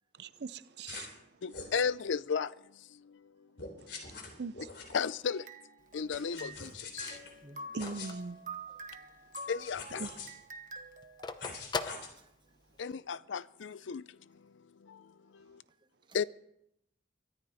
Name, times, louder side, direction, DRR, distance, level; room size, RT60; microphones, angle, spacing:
voice 1, 0.1-1.4 3.8-4.9 7.7-8.4 10.0-10.2, right 3 dB, 60° right, 0.6 m, -42 dB
sound 1, 0.9-1.2 1.5-1.8 3.6-5.1 6.1-7.3 7.8-8.1 9.3-10.3 11.4-12.1, left 4 dB, 70° left, 3.6 m, -44 dB
voice 2, 1.4-3.8 4.9-5.5 5.9-7.2 9.5-10.0 12.8-15.6 16.1-16.2, left 6 dB, 85° left, 0.5 m, -36 dB
sound 2, 5.3-6.7 7.0-11.3, right 2 dB, 45° right, 1.3 m, -47 dB
Telephone, 5.8-9.2 9.6-9.7 9.9-12.8, left 4 dB, 25° left, 0.7 m, -41 dB
voice 3, 6.3-6.7 7.4-7.7 9.1-9.2 11.3-11.7 12.2-12.5 13.9-14.0 15.7-16.2, right 1 dB, 25° right, 1.0 m, -58 dB
23.5 x 13.5 x 4.2 m
head